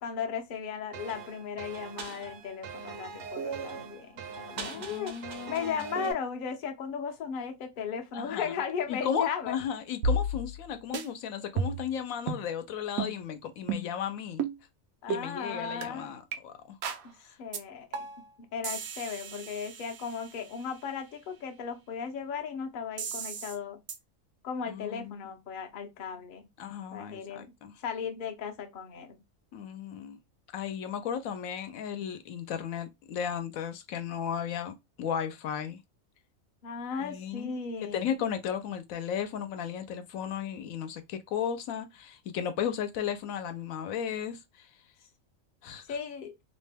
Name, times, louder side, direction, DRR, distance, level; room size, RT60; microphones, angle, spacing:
voice 1, 0.0-5.1 5.5-9.5 15.0-16.1 17.0-17.1 17.4-18.0 18.5-23.8 24.4-26.5 26.9-27.5 27.8-29.2 36.6-38.1 45.9-46.3, left 6 dB, 55° left, 0.6 m, -36 dB
sound 1, 0.9-6.1, right 6 dB, 65° right, 0.9 m, -40 dB
voice 2, 4.6-6.2 8.1-8.5 8.9-14.4 15.1-16.8 17.2-17.3 24.7-25.3 26.6-27.7 29.5-30.2 30.5-35.8 37.0-37.5 37.8-44.7 45.6-46.0, left 8 dB, 80° left, 1.0 m, -35 dB
sound 2, 10.0-10.7 10.9-11.1 11.6-11.9 12.3-12.5 13.0-13.2 13.7-14.0 14.4-14.6 15.1-15.2 15.8-15.9 16.3-16.4 16.8-17.1 17.5-17.6 17.9-18.3 18.6-20.5 23.0-23.6 23.9-24.0, right 3 dB, 85° right, 1.0 m, -33 dB
2.9 x 2.1 x 3.3 m
omnidirectional pair, 1.4 m